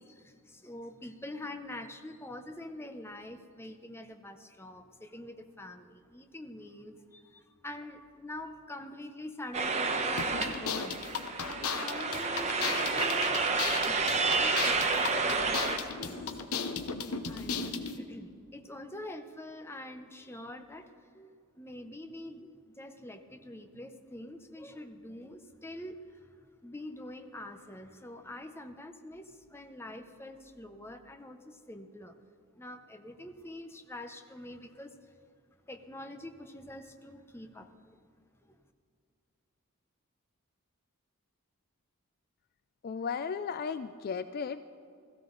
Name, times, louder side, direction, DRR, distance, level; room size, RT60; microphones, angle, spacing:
voice 1, 0.0-11.0 11.4-13.6 13.8-16.4 17.2-26.3 26.6-32.2 32.6-35.0 35.7-38.0 38.5-38.6, left 1 dB, 10° left, 7 dB, 0.7 m, -45 dB
sound 1, 9.5-15.8, right 4 dB, 30° right, 0.9 m, -30 dB
sound 2, 10.2-18.0, left 6 dB, 80° left, 0.9 m, -36 dB
voice 2, 42.8-44.6, left 6 dB, 45° left, 12 dB, 0.3 m, -35 dB
17.0 x 14.5 x 3.9 m, 2.4 s
head